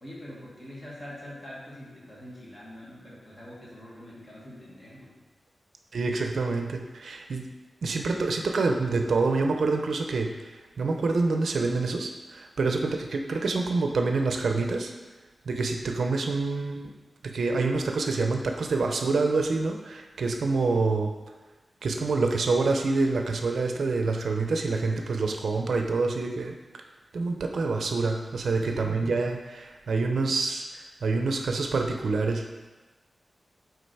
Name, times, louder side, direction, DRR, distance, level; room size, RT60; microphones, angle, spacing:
voice 1, 0.0-5.1 28.6-29.1, left 1 dB, 30° left, -6 dB, 1.7 m, -44 dB
voice 2, 5.9-7.5 7.8-14.9 15.5-16.9 17.2-21.1 21.8-26.5 27.1-32.4, right 3 dB, 75° right, 3 dB, 0.5 m, -27 dB
5.4 x 3.8 x 4.6 m, 1.2 s
wide cardioid pair, 155°, 0 cm